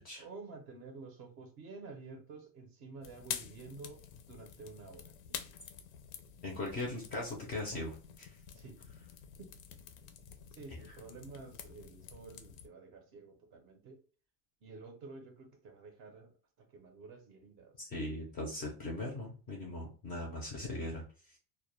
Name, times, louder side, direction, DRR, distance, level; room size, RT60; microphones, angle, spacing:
voice 1, 0.2-4.0 4.3-5.5 8.5-8.8 9.4-9.5 10.6-14.0 14.6-16.3 16.6-17.8, right 4 dB, 35° right, 0.4 m, -50 dB
sound 1, 3.0-12.7, left 9 dB, 90° left, 0.5 m, -48 dB
voice 2, 6.4-8.3 10.7-11.0 17.8-21.0, left 2 dB, 25° left, 0.3 m, -39 dB
2.1 x 2.1 x 2.9 m
cardioid pair, 170°, 40 cm